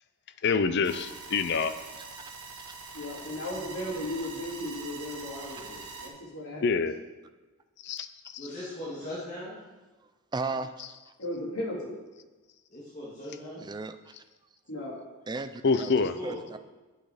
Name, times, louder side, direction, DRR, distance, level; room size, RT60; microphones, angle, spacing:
voice 1, 0.4-1.8 6.6-7.0 7.8-8.1 8.3-8.5 15.6-16.2, left 4 dB, 50° left, 11 dB, 0.5 m, -26 dB
sound 1, 0.8-6.1, right 4 dB, 80° right, 1.4 m, -43 dB
voice 2, 2.9-6.6 11.2-12.0 14.7-14.9, left 1 dB, 80° left, -5 dB, 3.0 m, -36 dB
voice 3, 8.4-9.6 12.7-13.6 15.9-16.4, left 1 dB, 35° left, -7 dB, 2.0 m, -39 dB
voice 4, 10.3-10.8 13.6-14.1 15.3-15.9 16.2-16.6, right 3 dB, 20° right, 10 dB, 0.4 m, -35 dB
9.1 x 6.4 x 5.0 m, 1.2 s
head